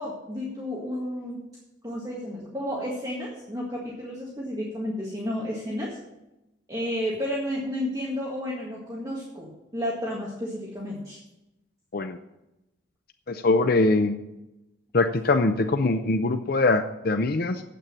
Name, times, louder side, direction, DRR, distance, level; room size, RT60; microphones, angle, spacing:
voice 1, 0.0-1.4 1.8-6.0 6.7-11.2, left 1 dB, 20° right, -4 dB, 1.8 m, -32 dB
voice 2, 13.3-14.2 14.9-17.6, left 2 dB, 50° left, 7 dB, 0.5 m, -22 dB
9.2 x 8.4 x 7.5 m, 0.95 s
head